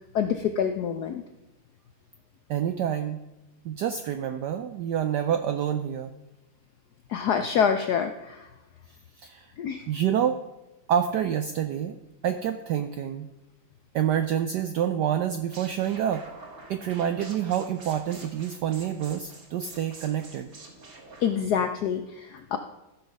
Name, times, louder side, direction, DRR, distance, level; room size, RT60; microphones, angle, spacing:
voice 1, 0.1-1.2 7.1-8.5 9.6-9.8 21.2-22.6, left 7 dB, 80° left, 7 dB, 0.9 m, -26 dB
voice 2, 2.5-3.2 3.6-6.1 9.2-9.5 9.9-10.4 10.9-12.0 12.2-13.3 13.9-16.2 16.7-20.5, right 9 dB, 80° right, 9 dB, 0.9 m, -27 dB
sound 1, 15.5-21.4, right 3 dB, 45° right, 2.0 m, -47 dB
14.5 x 5.8 x 5.3 m, 1.0 s
omnidirectional pair, 2.4 m